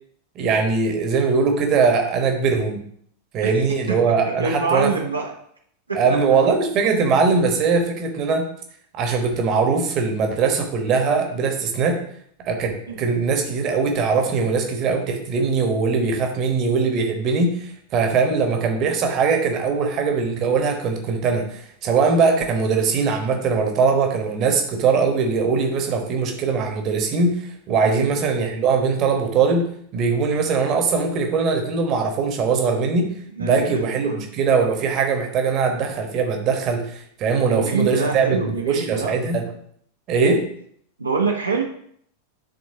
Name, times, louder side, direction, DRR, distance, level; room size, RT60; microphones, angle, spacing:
voice 1, 0.3-2.9 3.3-4.9 5.9-8.5 8.9-12.0 12.4-33.1 33.4-39.5 40.1-40.5, right 5 dB, 35° right, 4 dB, 1.1 m, -21 dB
voice 2, 3.4-4.0 4.2-5.3 5.9-6.2 12.9-13.1 27.8-28.1 33.4-34.2 37.4-39.2 41.0-41.6, right 4 dB, 80° right, 0 dB, 0.8 m, -26 dB
10.5 x 3.6 x 2.8 m, 0.66 s
figure-of-eight pair, 90°, 0 cm